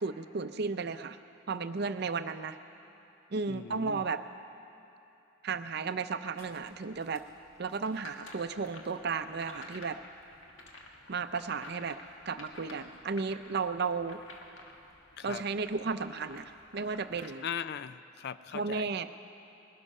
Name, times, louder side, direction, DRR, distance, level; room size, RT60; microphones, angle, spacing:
voice 1, 0.0-1.2 1.5-2.6 3.3-4.2 5.4-7.2 7.6-10.0 11.1-12.0 12.3-14.2 15.2-17.5 18.5-19.1, right 4 dB, 55° right, 10 dB, 0.5 m, -34 dB
voice 2, 3.5-4.0 15.2-15.4 17.4-18.9, left 7 dB, 55° left, 14 dB, 0.4 m, -39 dB
sound 1, 6.3-17.3, left 2 dB, 80° left, 1.6 m, -52 dB
19.5 x 12.0 x 5.4 m, 2.9 s
head